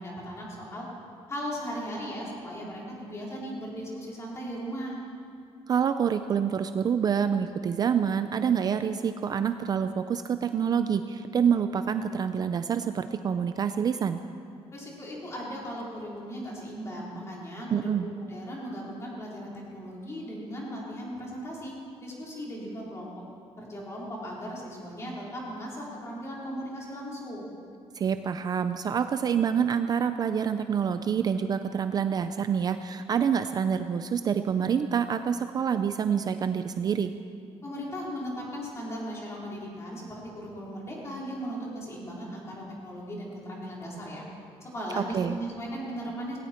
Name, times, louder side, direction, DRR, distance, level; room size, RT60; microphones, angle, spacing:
voice 1, 0.0-0.8 1.3-5.0 14.7-21.7 22.0-23.1 23.6-27.5 37.6-44.2 44.6-46.4, equal, 25° left, -4 dB, 3.8 m, -37 dB
voice 2, 5.7-14.2 17.7-18.1 28.0-37.1 45.1-45.4, right 7 dB, 35° right, 9 dB, 0.4 m, -27 dB
18.5 x 17.5 x 4.4 m, 2.4 s
cardioid pair, 165°, 11 cm